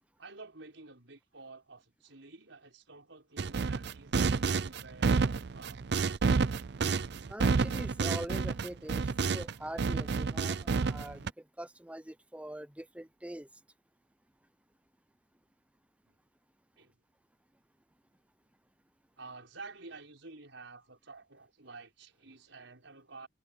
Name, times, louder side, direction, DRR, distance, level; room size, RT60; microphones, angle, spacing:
voice 1, 0.2-6.1 16.1-16.2 16.8-17.0 19.2-23.3, right 3 dB, 85° right, 5.6 m, -51 dB
sound 1, 3.4-9.5 9.8-11.3, right 4 dB, 60° right, 0.5 m, -29 dB
voice 2, 7.3-11.3 11.6-13.5, right 1 dB, 5° right, 0.7 m, -43 dB
head